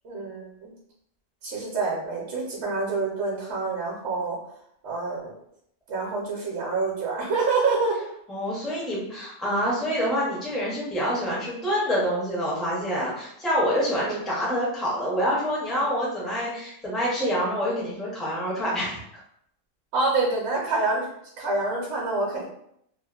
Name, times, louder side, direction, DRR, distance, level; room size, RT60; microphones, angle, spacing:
voice 1, 0.0-0.7 1.4-4.4 4.8-5.3 5.9-8.0 14.0-14.2 19.9-21.1 21.4-22.4, right 3 dB, 60° right, -3 dB, 0.9 m, -27 dB
voice 2, 8.3-19.0, equal, ahead, -5 dB, 0.4 m, -26 dB
2.7 x 2.1 x 2.3 m, 0.73 s
omnidirectional pair, 1.4 m